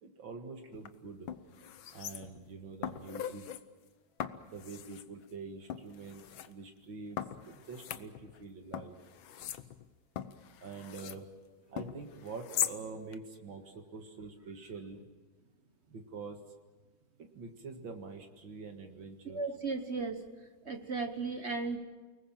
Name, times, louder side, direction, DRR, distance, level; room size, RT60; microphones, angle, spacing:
voice 1, 0.0-1.3 1.9-3.5 4.5-7.2 7.5-9.0 10.6-11.3 11.7-15.0 15.9-16.4 17.2-19.4, right 4 dB, 75° right, 4 dB, 2.6 m, -45 dB
sound 1, 0.7-0.9 1.3-2.5 2.8-3.6 4.2-5.1 5.7-6.5 7.2-8.4 8.7-11.2 11.8-12.8 13.1-13.2, left 10 dB, 85° left, 1.7 m, -40 dB
voice 2, 19.2-20.2 20.6-21.8, right 4 dB, 40° right, 7 dB, 1.2 m, -35 dB
29.5 x 20.0 x 7.5 m, 1.3 s
omnidirectional pair, 2.1 m